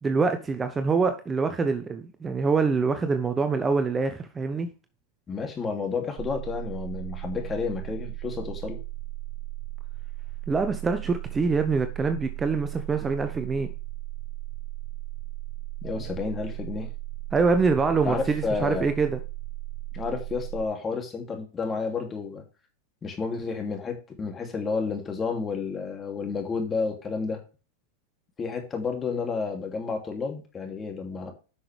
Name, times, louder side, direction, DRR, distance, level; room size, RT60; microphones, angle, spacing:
voice 1, 0.0-4.7 10.5-13.7 17.3-19.2, right 4 dB, 20° right, 8 dB, 1.0 m, -25 dB
voice 2, 5.3-8.8 15.8-16.9 18.0-18.9 19.9-22.4 23.0-27.4 28.4-31.3, left 4 dB, 20° left, 4 dB, 2.8 m, -31 dB
sound 1, 6.2-20.7, right 18 dB, 40° right, 0.5 m, -37 dB
11.0 x 6.2 x 3.4 m, 0.34 s
hypercardioid pair, 115°, 0 cm